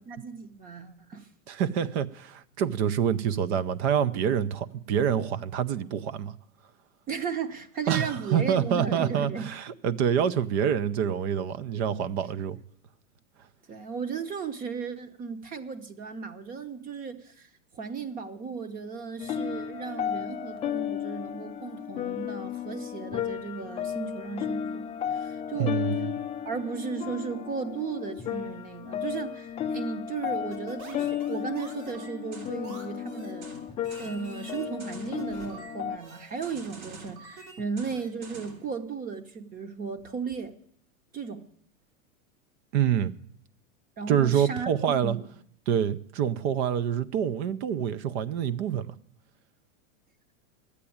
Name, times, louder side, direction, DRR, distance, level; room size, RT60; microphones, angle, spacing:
voice 1, 0.0-1.3 7.1-9.4 13.7-25.8 26.4-33.5 34.0-40.5 41.1-41.4 44.0-45.2, right 5 dB, 20° right, 0.9 m, -35 dB
voice 2, 1.5-6.3 7.9-12.6 25.6-26.1 42.7-43.1 44.1-45.2 45.7-48.9, right 8 dB, 50° right, 0.7 m, -26 dB
sound 1, 19.2-36.0, left 9 dB, 15° left, 0.5 m, -34 dB
sound 2, 30.5-38.7, right 3 dB, 75° right, 3.5 m, -47 dB
11.5 x 8.5 x 8.5 m
supercardioid pair, 145°, 41 cm